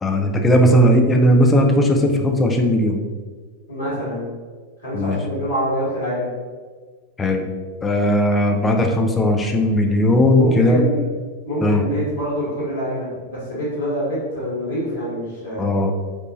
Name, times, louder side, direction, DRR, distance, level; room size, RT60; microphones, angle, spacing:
voice 1, 0.0-3.0 4.9-5.2 7.2-7.4 7.8-10.8 11.6-11.8 15.6-15.9, equal, 15° left, 3 dB, 0.3 m, -17 dB
voice 2, 3.7-4.2 4.8-6.3 10.3-11.0 11.4-15.7, equal, 75° left, -9 dB, 1.4 m, -25 dB
3.0 x 2.2 x 2.4 m, 1.5 s
figure-of-eight pair, 90°, 0 cm